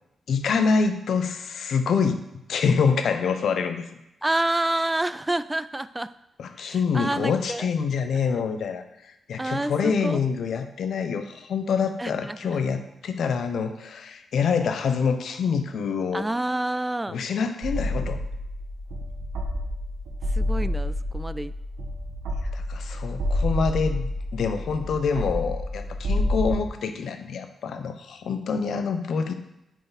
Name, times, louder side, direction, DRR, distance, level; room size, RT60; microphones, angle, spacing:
voice 1, 0.3-2.2 2.5-3.9 6.4-16.3 17.1-18.2 22.5-29.3, left 5 dB, 70° left, 7 dB, 0.8 m, -26 dB
voice 2, 4.2-6.1 6.6-7.7 9.4-10.2 12.0-12.6 16.1-17.2 20.3-21.5, right 1 dB, 20° right, 15 dB, 0.3 m, -28 dB
sound 1, 17.6-26.6, left 1 dB, 85° right, 1.1 m, -29 dB
7.8 x 4.8 x 4.1 m, 0.88 s
supercardioid pair, 45°, 0 cm